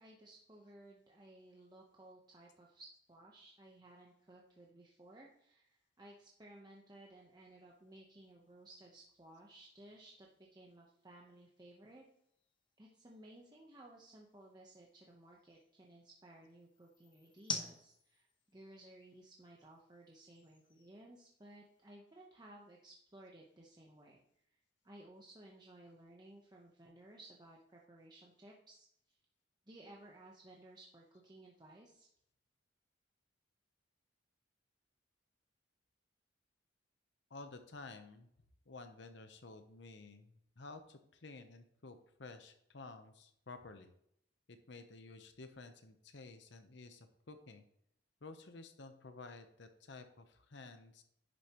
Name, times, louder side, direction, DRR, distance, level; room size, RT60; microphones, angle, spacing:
voice 1, 0.0-12.1 12.8-24.2 24.4-24.6 24.8-29.2 29.7-32.1, right 1 dB, 20° right, -2 dB, 0.9 m, -58 dB
sound 1, 7.7-21.9, left 4 dB, 25° left, 1.0 m, -52 dB
voice 2, 37.3-38.3 38.7-43.9 44.5-47.6 48.2-51.0, left 3 dB, 60° left, 8 dB, 0.8 m, -53 dB
10.5 x 7.0 x 3.0 m, 0.72 s
head